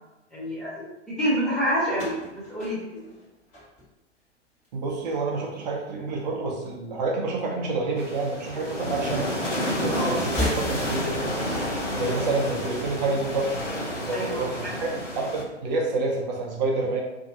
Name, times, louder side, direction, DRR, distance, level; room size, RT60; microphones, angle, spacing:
voice 1, 0.3-2.1 2.5-2.9 9.9-10.2 14.1-14.7, equal, ahead, -9 dB, 0.5 m, -27 dB
sound 1, 1.9-4.2 4.5-5.1 6.2-7.2 7.5-7.6 8.7-8.8 10.2-11.2, left 1 dB, 20° left, 1.2 m, -34 dB
voice 2, 4.7-9.3 9.8-11.4 11.9-13.6 14.0-17.0, right 3 dB, 35° right, 0 dB, 0.7 m, -28 dB
sound 2, 8.0-15.4, equal, 85° left, 0.9 m, -30 dB
Singing, 8.6-12.4 12.7-12.8, equal, 40° left, 0.9 m, -41 dB
2.7 x 2.6 x 2.6 m, 0.99 s
figure-of-eight pair, 110°, 36 cm